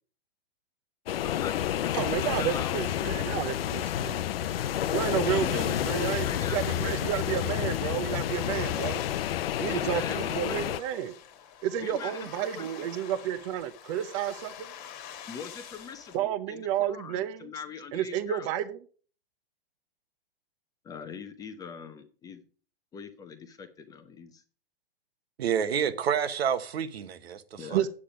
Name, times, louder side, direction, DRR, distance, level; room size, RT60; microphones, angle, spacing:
sound 1, 1.1-10.8, left 11 dB, 70° left, 0.7 m, -30 dB
voice 1, 1.2-3.3 5.4-7.1 9.6-10.8 11.8-12.9 15.3-18.5 20.8-22.4 22.9-24.4 27.6-27.9, left 6 dB, 10° left, 0.6 m, -42 dB
voice 2, 2.0-4.2 4.9-9.0 9.6-11.2 11.6-14.7 16.1-17.5 17.9-18.8 27.7-27.9, right 11 dB, 30° right, 0.6 m, -31 dB
sound 2, 5.0-16.2, left 9 dB, 30° left, 1.6 m, -46 dB
voice 3, 25.4-27.8, right 8 dB, 75° right, 1.2 m, -29 dB
8.6 x 8.5 x 5.0 m
hypercardioid pair, 145°, 31 cm